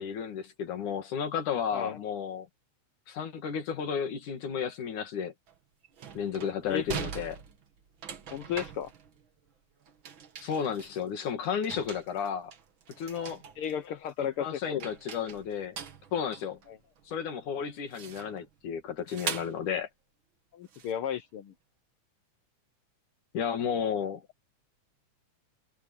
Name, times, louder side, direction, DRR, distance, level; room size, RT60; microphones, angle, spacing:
voice 1, 0.0-2.5 3.1-5.3 6.2-7.4 10.4-12.5 13.0-13.4 14.4-15.8 16.1-16.6 17.1-19.9 23.3-24.2, left 7 dB, 90° left, 3.8 m, -33 dB
sound 1, 5.5-5.6 5.8-9.5 9.8-11.3 11.6-13.7 14.1-14.5 14.8-17.1 17.9-18.5 19.1-19.7 20.7-21.0, right 7 dB, 45° right, 2.0 m, -42 dB
voice 2, 8.3-8.9 13.6-14.8 16.7-16.8 20.5-21.5, left 9 dB, 75° left, 1.3 m, -34 dB
omnidirectional pair, 3.4 m